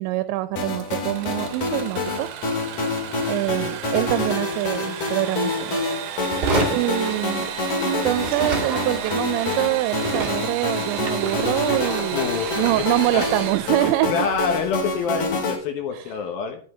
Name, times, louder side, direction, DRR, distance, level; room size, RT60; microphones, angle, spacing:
voice 1, 0.0-2.3 3.3-5.8 6.7-7.5 7.9-14.3 15.9-16.1, right 17 dB, 85° right, 12 dB, 2.9 m, -25 dB
sound 1, 0.6-15.6, left 3 dB, 50° left, 3.1 m, -27 dB
Engine / Sawing, 0.8-14.5, right 9 dB, 70° right, 2.5 m, -34 dB
sound 2, 6.2-7.8 8.1-15.3, right 3 dB, 35° right, 1.7 m, -31 dB
voice 2, 6.5-7.1 12.1-12.8 13.1-13.3 14.1-16.6, left 5 dB, 70° left, 5 dB, 2.6 m, -27 dB
12.5 x 7.6 x 4.5 m, 0.43 s
omnidirectional pair, 5.1 m